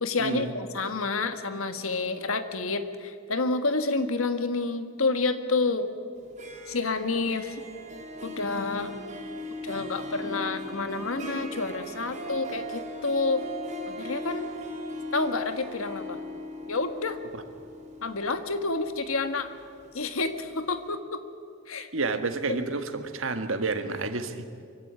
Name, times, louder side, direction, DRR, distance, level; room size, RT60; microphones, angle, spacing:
voice 1, 0.0-5.9 6.7-7.6 8.2-9.0 9.6-13.4 13.9-14.5 15.1-16.2 16.7-17.2 18.0-19.5 19.9-21.2 21.7-21.9, left 3 dB, 90° left, 9 dB, 1.6 m, -29 dB
Harp, 6.2-20.1, equal, 35° right, 4.1 m, -38 dB
voice 2, 21.9-24.6, right 3 dB, 70° right, 8 dB, 1.7 m, -30 dB
24.5 x 16.0 x 9.6 m, 2.3 s
head